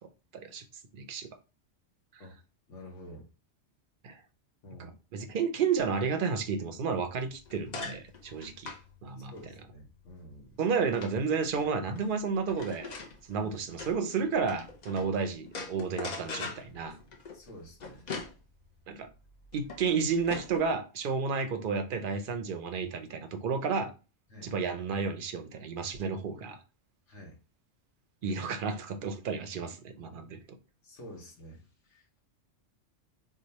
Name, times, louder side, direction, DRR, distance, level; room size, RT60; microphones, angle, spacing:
voice 1, 0.3-0.6 0.9-1.3 4.0-4.2 5.1-8.7 9.0-9.3 10.6-12.9 13.3-17.0 18.9-19.1 19.5-23.9 24.4-26.6 28.2-30.4, right 5 dB, 55° right, 0.6 m, -31 dB
voice 2, 2.7-3.3 4.6-4.9 9.3-10.6 13.3-13.5 17.3-18.0 24.3-24.5 27.1-27.4 30.8-32.2, equal, 75° left, 1.3 m, -49 dB
sound 1, 7.0-15.1 15.5-20.7, left 4 dB, 45° left, 0.6 m, -43 dB
3.0 x 2.3 x 4.0 m
omnidirectional pair, 1.3 m